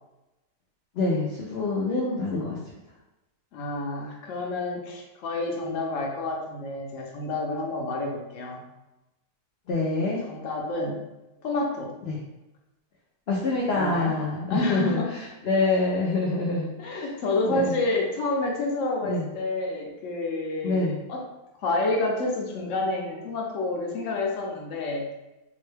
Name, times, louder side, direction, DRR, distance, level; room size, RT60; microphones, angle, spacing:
voice 1, 1.0-2.6 9.7-10.2 12.1-12.2 13.3-15.0 15.4-17.0 17.5-17.8 19.0-19.2 20.6-21.0, left 2 dB, 75° left, -4 dB, 0.5 m, -26 dB
voice 2, 3.5-8.6 10.2-11.0 11.4-11.9 13.7-14.1 14.5-15.1 15.6-15.7 16.8-21.2 21.6-25.1, left 2 dB, 60° left, 0 dB, 0.9 m, -29 dB
3.7 x 2.1 x 3.2 m, 0.99 s
omnidirectional pair, 1.7 m